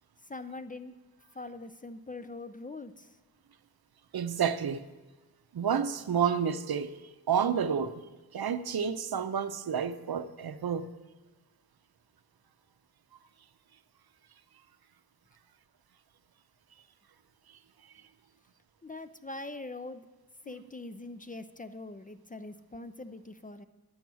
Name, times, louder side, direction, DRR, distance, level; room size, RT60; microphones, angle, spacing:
voice 1, 0.3-0.9 1.4-3.1 18.8-20.0 20.5-23.7, left 2 dB, 20° left, 0.4 m, -42 dB
voice 2, 4.1-4.9 5.5-6.9 7.3-8.0 8.3-10.9, right 7 dB, 70° right, 0.6 m, -30 dB
10.5 x 7.8 x 6.2 m
wide cardioid pair, 100°, 38 cm